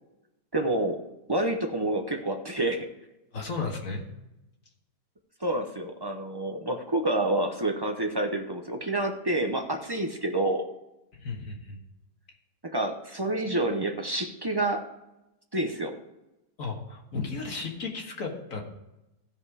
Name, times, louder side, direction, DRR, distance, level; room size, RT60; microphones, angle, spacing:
voice 1, 0.5-1.0 1.3-2.9 5.4-10.7 12.6-14.8 15.5-15.9, right 2 dB, 35° right, 4 dB, 0.3 m, -28 dB
voice 2, 3.3-4.0 11.2-11.8 16.6-18.6, left 4 dB, 50° left, 1 dB, 1.9 m, -34 dB
15.5 x 5.3 x 4.8 m, 0.95 s
omnidirectional pair, 1.8 m